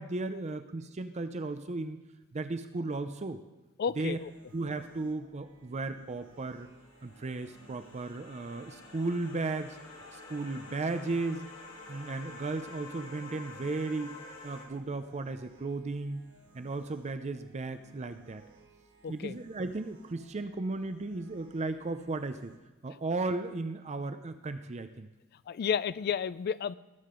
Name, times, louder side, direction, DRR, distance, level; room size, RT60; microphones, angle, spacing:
voice 1, 0.0-2.0 2.3-3.4 4.0-4.2 4.5-6.7 7.0-9.8 10.1-11.5 11.9-14.2 14.4-16.2 16.5-18.4 19.1-22.5 22.8-25.1, right 3 dB, 35° right, 9 dB, 0.5 m, -35 dB
voice 2, 3.8-4.3 19.0-19.4 25.5-26.7, left 7 dB, 50° left, 17 dB, 0.3 m, -32 dB
sound 1, 4.1-22.6, right 3 dB, 90° right, 3.2 m, -60 dB
sound 2, 6.2-14.7, left 3 dB, 70° left, 2.3 m, -49 dB
19.0 x 7.5 x 3.8 m, 1.1 s
head